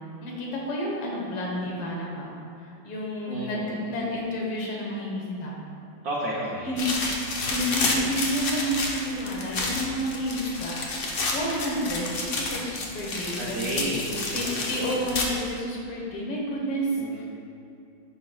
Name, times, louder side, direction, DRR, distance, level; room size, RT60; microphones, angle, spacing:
voice 1, 0.2-2.3 2.8-5.5 6.7-6.9 7.4-10.7 11.3-13.8 14.3-16.9 17.2-17.3, equal, 90° left, -3 dB, 2.2 m, -30 dB
voice 2, 3.3-3.9 6.0-6.8 13.4-15.0 17.0-17.2, right 1 dB, 60° right, -5 dB, 1.1 m, -32 dB
sound 1, 6.8-15.5, left 2 dB, 65° left, 0.7 m, -30 dB
10.5 x 5.5 x 2.3 m, 2.6 s
omnidirectional pair, 2.4 m